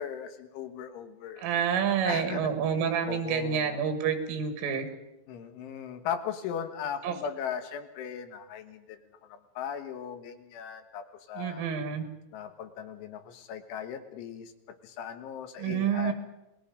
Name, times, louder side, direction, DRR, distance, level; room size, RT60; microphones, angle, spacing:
voice 1, 0.0-1.5 2.1-2.6 3.1-3.8 5.3-11.7 12.3-16.1, left 8 dB, 80° left, 7 dB, 3.8 m, -38 dB
voice 2, 1.4-4.9 7.0-7.2 11.4-12.1 15.6-16.1, right 7 dB, 85° right, 8 dB, 4.6 m, -28 dB
28.5 x 20.0 x 5.2 m, 0.92 s
omnidirectional pair, 5.6 m